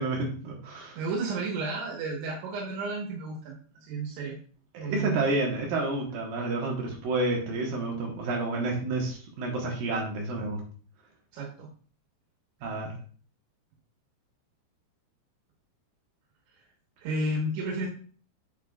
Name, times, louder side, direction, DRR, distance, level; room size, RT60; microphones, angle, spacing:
voice 1, 0.0-1.0 4.7-10.6 12.6-12.9, right 2 dB, 65° right, 0 dB, 2.6 m, -30 dB
voice 2, 1.0-4.4 4.8-5.3 11.3-11.7 17.0-17.9, right 2 dB, 85° right, -2 dB, 3.7 m, -32 dB
8.1 x 8.1 x 2.4 m, 0.43 s
omnidirectional pair, 5.2 m